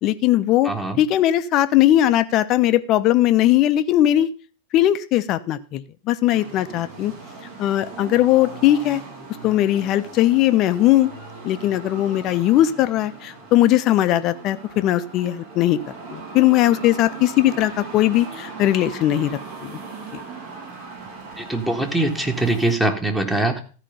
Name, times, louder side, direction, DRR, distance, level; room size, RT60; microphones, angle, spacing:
voice 1, 0.0-0.7 1.0-4.3 4.7-7.1 7.6-9.0 9.4-11.1 11.4-15.8 16.1-19.8 20.1-20.2, left 13 dB, 35° left, 13 dB, 0.8 m, -19 dB
voice 2, 0.6-1.0 21.4-23.6, right 2 dB, 5° right, 3 dB, 1.7 m, -22 dB
sound 1, 6.3-22.7, right 4 dB, 50° right, 4.4 m, -39 dB
14.0 x 5.0 x 7.0 m, 0.39 s
figure-of-eight pair, 90°, 0 cm